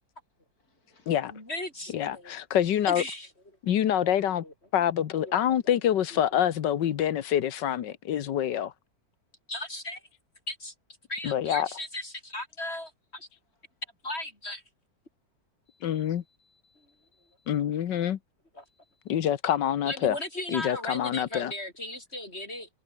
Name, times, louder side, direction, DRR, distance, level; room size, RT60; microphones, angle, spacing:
voice 1, 0.3-1.2 5.3-5.6 13.4-13.8 15.7-18.1 18.6-19.2, left 3 dB, 50° left, 7.4 m, -69 dB
voice 2, 1.3-2.3 2.9-3.3 4.0-4.5 5.0-6.7 9.5-10.0 10.5-10.7 11.1-13.3 14.0-14.6 18.5-18.6 19.8-22.7, left 1 dB, 35° left, 6.3 m, -37 dB
voice 3, 1.9-3.0 3.6-4.4 4.7-8.7 11.2-11.7 15.8-16.2 17.5-18.2 19.1-20.1 20.5-21.5, left 10 dB, 75° left, 1.7 m, -26 dB
omnidirectional pair, 2.0 m